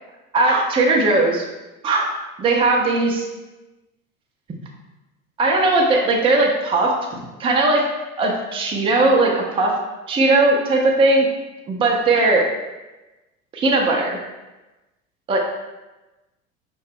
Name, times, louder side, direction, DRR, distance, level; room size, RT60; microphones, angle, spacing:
voice 1, 0.3-1.4 1.8-2.1 2.4-3.2 5.4-7.9 8.2-9.7 10.1-11.3 11.7-12.4 13.5-14.2 15.3-15.4, right 2 dB, 15° right, 0 dB, 0.5 m, -18 dB
5.4 x 2.2 x 3.6 m, 1.1 s
figure-of-eight pair, 70°, 41 cm